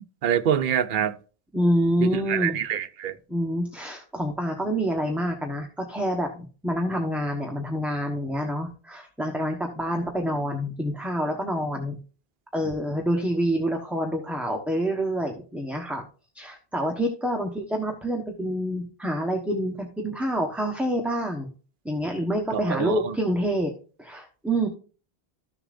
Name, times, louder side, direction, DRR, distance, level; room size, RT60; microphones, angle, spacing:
voice 1, 0.2-1.1 2.0-3.1 22.7-23.1, right 9 dB, 55° right, 0.8 m, -25 dB
voice 2, 1.5-2.6 3.3-12.0 12.5-16.0 16.3-21.5 21.8-23.7 24.0-24.7, equal, ahead, 1.0 m, -27 dB
14.0 x 6.8 x 2.5 m
omnidirectional pair, 1.1 m